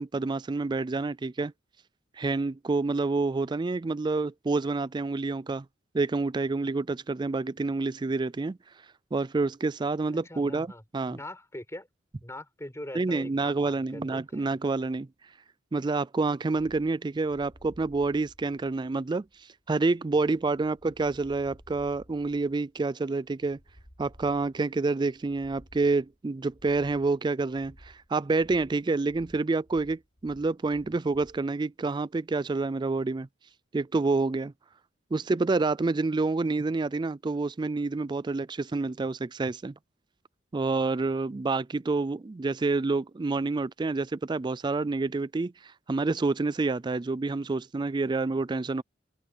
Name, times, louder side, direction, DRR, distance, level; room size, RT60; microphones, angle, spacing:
voice 1, 0.0-1.5 2.2-5.7 5.9-8.6 9.1-11.2 12.9-15.1 15.7-19.3 19.7-23.6 24.0-33.3 33.7-34.5 35.1-39.7 40.5-48.8, right 3 dB, 25° right, 0.4 m, -28 dB
voice 2, 10.1-11.9 12.2-14.6, left 1 dB, 15° left, 5.4 m, -43 dB
sound 1, 16.5-31.4, equal, 45° left, 5.8 m, -56 dB
open air
head